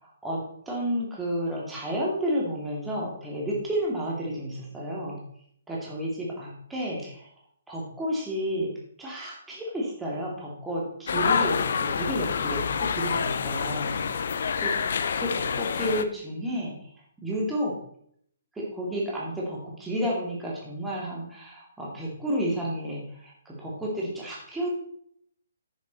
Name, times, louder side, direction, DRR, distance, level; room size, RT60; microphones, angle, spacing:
voice 1, 0.0-5.2 5.7-7.3 7.7-8.7 9.0-14.0 14.6-16.8 17.2-17.8 18.5-24.7, equal, 5° right, -4 dB, 2.5 m, -31 dB
sound 1, 11.1-16.0, left 6 dB, 60° left, 0.7 m, -27 dB
9.3 x 7.5 x 4.1 m, 0.65 s
figure-of-eight pair, 135°, 0 cm